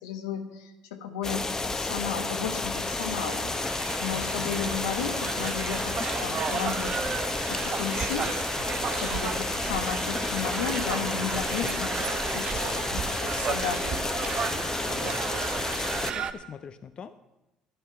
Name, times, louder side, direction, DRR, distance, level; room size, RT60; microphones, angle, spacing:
voice 1, 0.0-7.0 7.5-15.1, left 7 dB, 80° left, 7 dB, 1.3 m, -35 dB
sound 1, 1.2-16.1, left 3 dB, 25° left, 1.0 m, -31 dB
sound 2, 1.7-16.3, right 7 dB, 50° right, 0.9 m, -34 dB
voice 2, 4.1-4.6 15.9-17.2, left 7 dB, 45° left, 11 dB, 0.6 m, -44 dB
12.0 x 11.0 x 5.7 m, 0.99 s
hypercardioid pair, 60°, 2 cm